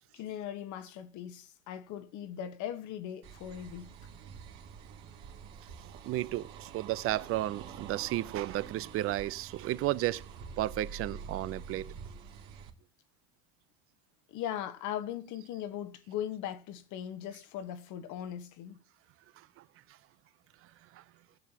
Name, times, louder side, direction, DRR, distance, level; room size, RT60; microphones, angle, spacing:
voice 1, 0.1-3.9 14.3-18.8, left 10 dB, 55° left, 1.3 m, -39 dB
sound 1, 3.2-12.7, right 6 dB, 65° right, 2.4 m, -47 dB
voice 2, 6.1-10.2 10.6-11.9, right 15 dB, 40° right, 0.5 m, -33 dB
21.0 x 7.3 x 2.9 m
supercardioid pair, 120°, 36 cm